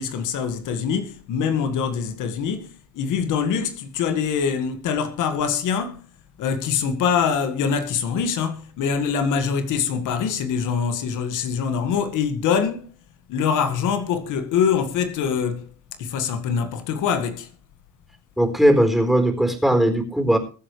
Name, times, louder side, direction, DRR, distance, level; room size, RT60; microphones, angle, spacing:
voice 1, 0.0-6.1 6.4-12.9 13.3-15.7 16.0-17.5, left 7 dB, 90° left, 1.9 m, -24 dB
voice 2, 18.4-20.4, right 1 dB, ahead, 4.2 m, -18 dB
22.5 x 8.4 x 3.3 m
cardioid pair, 90°, 30 cm